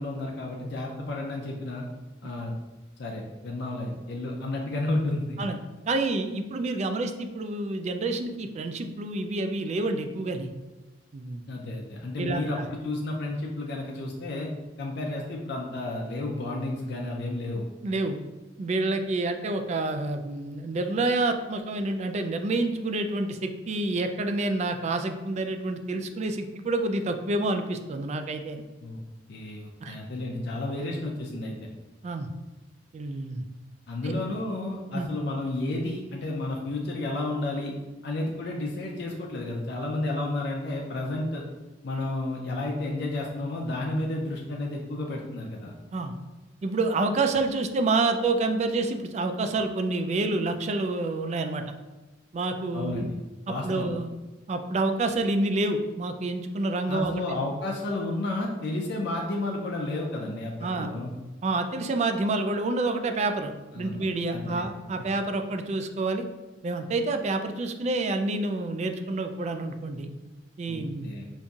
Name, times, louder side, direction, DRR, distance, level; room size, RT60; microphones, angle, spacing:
voice 1, 0.0-1.8 2.2-2.5 3.0-5.4 11.5-14.5 14.8-17.6 28.8-29.0 29.3-31.6 33.9-37.7 38.0-41.5 41.8-45.7 52.7-53.2 53.5-53.9 56.9-61.1 63.7-64.0 64.3-64.6 70.7-70.8 71.0-71.3, left 2 dB, 65° left, -1 dB, 0.5 m, -31 dB
voice 2, 5.9-10.5 11.1-11.4 12.2-12.6 17.8-18.2 18.6-28.6 29.8-30.0 32.0-32.3 32.9-33.4 34.0-34.1 34.9-35.1 45.9-46.1 46.6-51.6 52.3-53.1 53.5-54.1 54.5-57.2 60.6-60.9 61.4-66.2 66.6-70.1 70.6-71.1, right 2 dB, 35° right, 7 dB, 0.3 m, -28 dB
5.2 x 2.6 x 2.3 m, 1.1 s
head